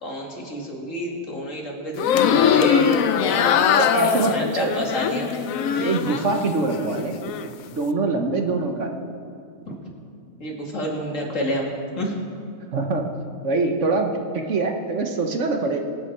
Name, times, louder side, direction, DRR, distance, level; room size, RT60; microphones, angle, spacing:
voice 1, 0.0-3.0 4.0-5.3 9.7-9.8 10.4-11.7 12.0-12.1, equal, 65° left, -2 dB, 2.7 m, -28 dB
sound 1, 1.9-6.4 6.7-7.5, left 8 dB, 80° left, 1.0 m, -21 dB
voice 2, 3.2-4.7 5.8-9.0 12.7-13.1 13.4-15.8, right 3 dB, 60° right, 4 dB, 1.4 m, -24 dB
23.5 x 9.1 x 4.6 m, 2.4 s
omnidirectional pair, 1.4 m